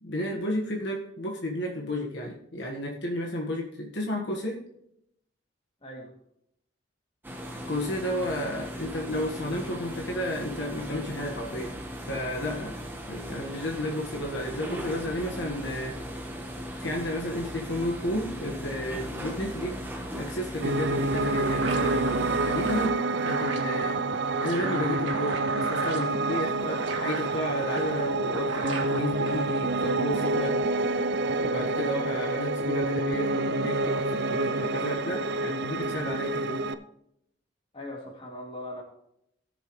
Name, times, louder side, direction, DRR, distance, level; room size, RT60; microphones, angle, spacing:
voice 1, 0.0-4.6 7.7-11.8 12.1-12.8 13.1-16.0 16.8-19.8 20.1-24.0 24.4-30.6 30.9-36.6, left 1 dB, 65° left, -1 dB, 1.5 m, -32 dB
voice 2, 5.8-6.1 37.7-38.8, left 1 dB, 30° left, -1 dB, 2.5 m, -39 dB
sound 1, 7.2-22.9, equal, 10° right, 1.2 m, -38 dB
Piano, 20.6-36.7, right 2 dB, 60° right, 0.5 m, -28 dB
sound 2, 20.8-29.8, right 3 dB, 80° right, 1.8 m, -39 dB
18.0 x 7.0 x 3.2 m, 0.75 s
head